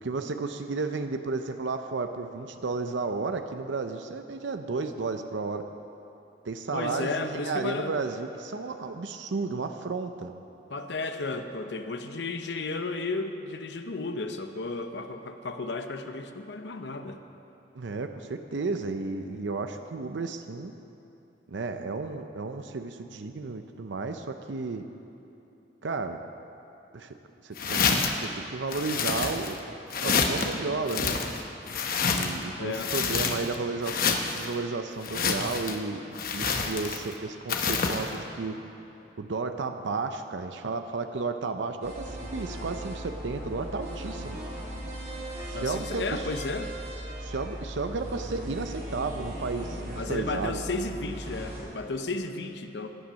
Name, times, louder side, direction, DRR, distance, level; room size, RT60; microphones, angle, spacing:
voice 1, 0.0-5.7 6.4-10.3 17.7-20.7 21.5-24.8 25.8-26.2 26.9-27.1 27.4-29.8 30.0-31.2 32.1-36.0 36.3-38.5 39.2-44.4 45.5-46.2 47.2-50.6, right 3 dB, 90° right, 7 dB, 0.6 m, -33 dB
voice 2, 6.7-7.9 10.7-17.2 32.6-32.9 45.5-46.7 49.9-52.9, left 3 dB, 75° left, 7 dB, 0.8 m, -33 dB
sound 1, 27.6-28.2 28.7-29.6 29.9-30.5 30.9-32.4 32.7-33.6 33.8-34.5 35.0-35.8 36.2-37.1 37.5-38.1, left 5 dB, 50° left, 1.0 m, -28 dB
sound 2, 41.8-51.6, right 1 dB, 55° right, 4.0 m, -38 dB
15.5 x 10.5 x 6.3 m, 2.9 s
head